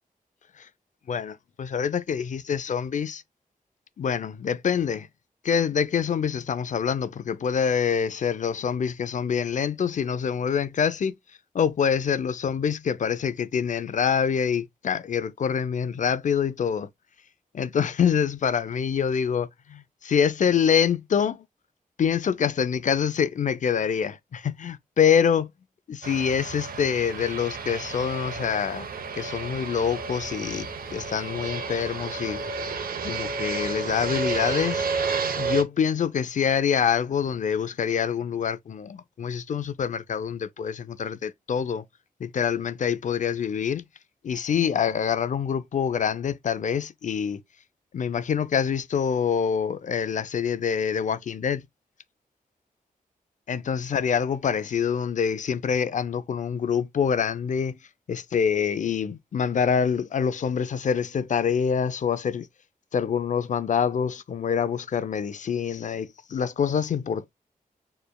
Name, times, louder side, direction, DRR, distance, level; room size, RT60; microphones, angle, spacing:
voice 1, 1.1-3.2 4.0-5.1 5.4-11.1 11.5-16.9 17.5-21.4 22.0-25.5 25.9-28.9 29.2-32.4 33.0-34.9 35.4-41.8 42.2-43.8 44.2-47.4 47.9-51.7 53.5-57.8 58.1-62.5 62.9-67.3, left 7 dB, 60° left, 0.5 m, -25 dB
Fixed-wing aircraft airplane, 26.0-35.6, right 4 dB, 80° right, 0.9 m, -31 dB
6.8 x 3.3 x 2.3 m
wide cardioid pair, 145°, 15 cm